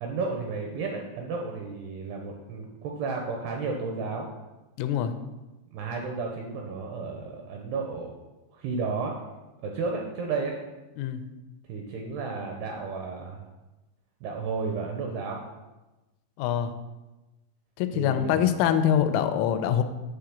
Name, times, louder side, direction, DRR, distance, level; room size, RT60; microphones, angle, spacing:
voice 1, 0.0-4.3 5.7-8.1 8.5-9.2 9.6-10.6 11.6-13.4 14.2-15.4 17.9-18.5, right 4 dB, 80° right, 1 dB, 2.4 m, -32 dB
voice 2, 4.8-5.1 11.0-11.2 16.4-16.7 17.8-19.8, left 9 dB, 90° left, 9 dB, 3.1 m, -24 dB
9.4 x 3.8 x 7.2 m, 1.1 s
omnidirectional pair, 5.5 m